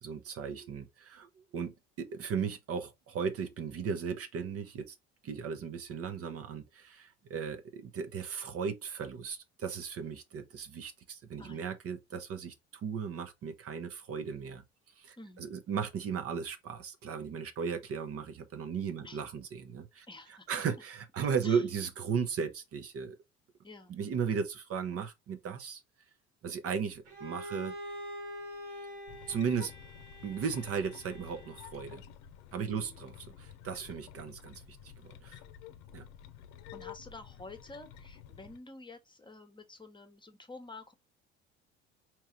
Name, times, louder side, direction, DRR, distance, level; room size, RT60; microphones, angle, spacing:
voice 1, 0.0-5.0 5.2-14.6 15.0-20.1 20.5-23.2 23.9-25.8 26.4-27.7 29.3-29.7 30.2-32.0 32.5-33.1 33.4-35.4 35.9-36.0, right 6 dB, 45° right, 0.8 m, -36 dB
voice 2, 11.4-11.7 15.2-15.5 19.0-19.2 20.1-20.6 21.4-21.6 23.6-23.9 32.7-33.0 36.7-40.9, left 2 dB, 15° left, 1.0 m, -49 dB
Bowed string instrument, 27.0-31.9, equal, 90° right, 1.7 m, -45 dB
sound 1, 29.1-38.6, left 10 dB, 65° left, 0.7 m, -51 dB
4.5 x 3.1 x 3.1 m
hypercardioid pair, 65°, 34 cm